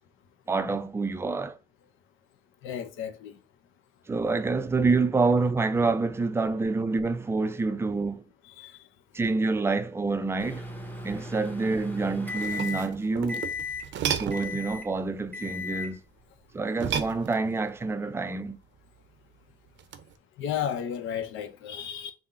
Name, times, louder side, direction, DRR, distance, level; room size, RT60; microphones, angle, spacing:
voice 1, 0.5-1.6 4.1-8.2 9.1-10.7 11.0-13.5 14.2-16.0 16.5-18.6, right 3 dB, 15° right, 0.3 m, -27 dB
voice 2, 2.6-3.4 8.6-8.8 20.4-22.1, left 9 dB, 85° left, 0.6 m, -33 dB
Microwave oven, 10.4-13.0 13.3-13.9 14.3-14.9 15.3-15.9, left 4 dB, 10° left, 0.7 m, -36 dB
sound 1, 12.2-14.6 16.7-17.7 19.8-20.1, right 8 dB, 70° right, 0.5 m, -33 dB
3.7 x 2.1 x 4.2 m
cardioid pair, 90°, 20 cm